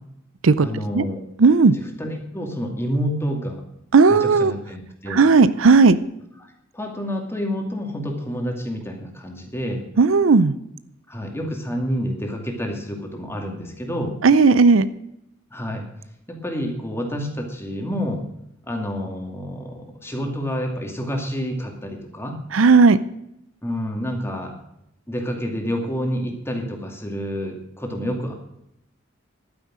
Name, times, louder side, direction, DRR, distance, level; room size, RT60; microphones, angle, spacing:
voice 1, 0.6-1.2 1.7-3.6 4.1-5.2 6.4-9.8 11.1-14.2 15.5-15.9 16.3-18.2 18.7-22.4 23.6-24.5 25.1-28.3, equal, 10° left, 2 dB, 2.4 m, -28 dB
voice 2, 1.4-1.8 3.9-4.5 5.1-6.0 10.0-10.5 14.2-14.9 22.5-23.0, right 4 dB, 75° right, 15 dB, 0.6 m, -14 dB
11.5 x 9.5 x 6.2 m, 0.80 s
head